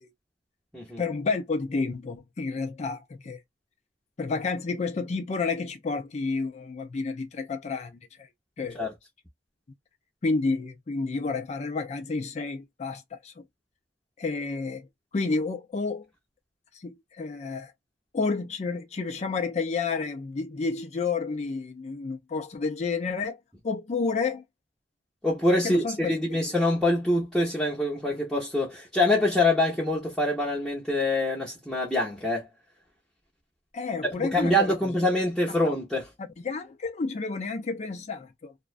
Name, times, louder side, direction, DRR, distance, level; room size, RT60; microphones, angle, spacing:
voice 1, 1.0-3.4 4.2-8.0 8.6-8.8 10.2-13.3 14.2-14.9 15.1-16.1 16.8-17.7 18.1-23.4 23.6-24.4 25.6-26.1 33.7-34.7 36.4-38.5, left 4 dB, 40° left, 0.4 m, -30 dB
voice 2, 25.2-32.5 34.2-36.1, left 1 dB, ahead, 0.7 m, -25 dB
2.4 x 2.1 x 2.4 m
head